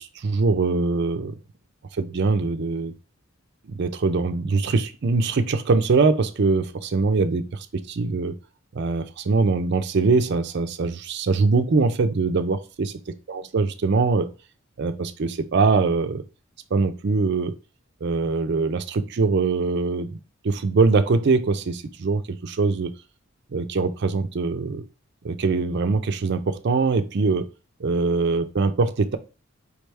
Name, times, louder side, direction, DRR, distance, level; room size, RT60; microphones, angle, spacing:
voice 1, 0.0-1.4 2.0-2.9 3.6-8.3 8.7-12.9 13.3-14.3 14.8-16.2 16.7-17.5 18.0-20.2 20.4-22.9 23.5-24.8 25.2-27.5 27.8-29.2, right 4 dB, 55° right, 8 dB, 0.5 m, -22 dB
4.9 x 3.4 x 3.2 m, 0.33 s
head